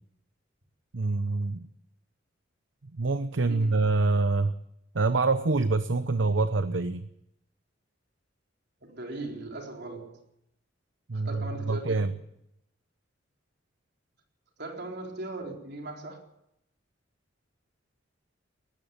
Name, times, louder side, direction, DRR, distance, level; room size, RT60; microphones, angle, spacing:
voice 1, 0.9-1.7 2.9-4.5 4.9-7.1 11.1-12.1, right 3 dB, 75° right, 0.9 m, -26 dB
voice 2, 3.5-3.8 8.8-10.2 11.1-12.1 14.6-16.2, right 2 dB, 60° right, 4.1 m, -39 dB
20.0 x 14.0 x 9.5 m
head